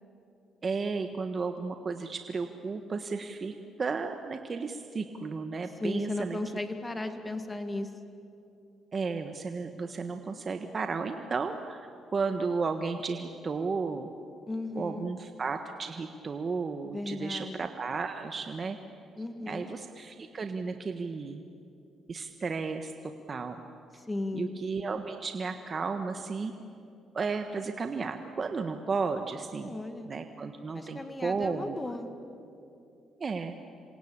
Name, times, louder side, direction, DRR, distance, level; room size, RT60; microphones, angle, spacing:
voice 1, 0.6-6.4 8.9-14.1 14.7-18.8 19.4-21.4 22.1-22.9 23.3-23.6 24.3-26.5 27.1-29.8 30.0-31.8 33.2-33.6, right 4 dB, 40° right, 6 dB, 1.4 m, -33 dB
voice 2, 5.8-7.9 14.5-15.1 16.9-17.6 19.2-19.7 24.0-24.5 29.6-30.1 30.7-32.1, left 2 dB, 20° left, 7 dB, 2.1 m, -35 dB
27.5 x 24.5 x 8.7 m, 2.7 s
cardioid pair, 90°, 0 cm